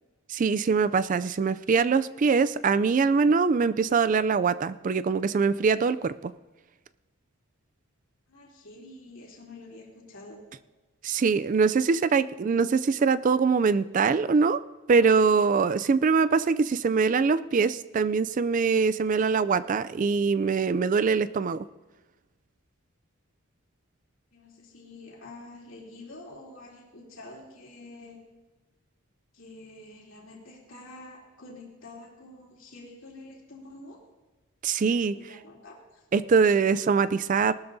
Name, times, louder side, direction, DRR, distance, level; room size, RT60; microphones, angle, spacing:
voice 1, 0.3-6.3 11.0-14.6 14.9-21.6 34.6-35.1 36.1-37.5, right 5 dB, 35° right, 15 dB, 0.3 m, -23 dB
voice 2, 8.3-10.4 12.4-12.6 24.3-28.2 29.3-34.0 35.1-36.1, left 2 dB, 65° left, -3 dB, 3.1 m, -47 dB
19.0 x 13.0 x 2.7 m, 1.2 s
head